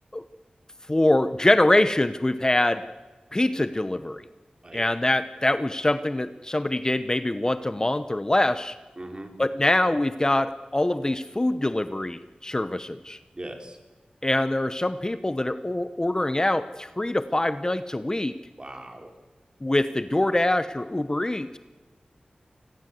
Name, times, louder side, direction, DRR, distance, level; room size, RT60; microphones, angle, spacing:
voice 1, 0.9-2.8 3.3-4.2 4.7-8.8 9.4-13.2 14.2-18.4 19.6-21.6, left 1 dB, 25° left, 12 dB, 1.0 m, -24 dB
voice 2, 9.0-9.3 13.3-13.8 18.6-19.1, right 1 dB, 35° right, 4 dB, 4.1 m, -39 dB
28.5 x 20.5 x 7.9 m, 1.2 s
wide cardioid pair, 70°, 3 cm